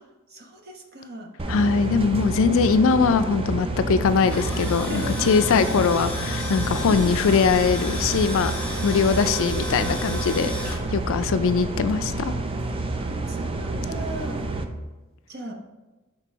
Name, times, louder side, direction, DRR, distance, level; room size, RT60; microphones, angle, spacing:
voice 1, 0.3-1.3 4.8-5.5 6.9-7.2 13.0-14.4 15.3-15.5, equal, 45° right, 2 dB, 1.0 m, -37 dB
sound 1, 1.4-14.6, right 2 dB, 25° right, 0.5 m, -29 dB
voice 2, 1.5-8.5 8.8-12.3, left 5 dB, 60° left, 11 dB, 0.4 m, -21 dB
Tools, 4.1-10.8, left 1 dB, 5° left, 1.5 m, -34 dB
6.0 x 3.7 x 4.6 m, 1.2 s
head